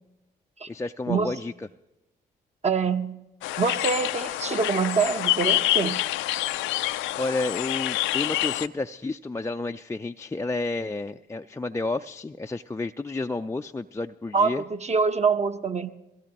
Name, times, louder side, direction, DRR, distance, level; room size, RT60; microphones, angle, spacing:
voice 1, 0.7-1.7 7.1-14.6, left 2 dB, 15° left, 5 dB, 0.4 m, -31 dB
voice 2, 2.6-3.2 3.6-6.0 14.3-15.9, right 5 dB, 35° right, 8 dB, 1.0 m, -25 dB
sound 1, 3.4-8.7, left 16 dB, 75° left, 0.4 m, -27 dB
22.5 x 17.0 x 3.0 m, 0.97 s
hypercardioid pair, 45°, 20 cm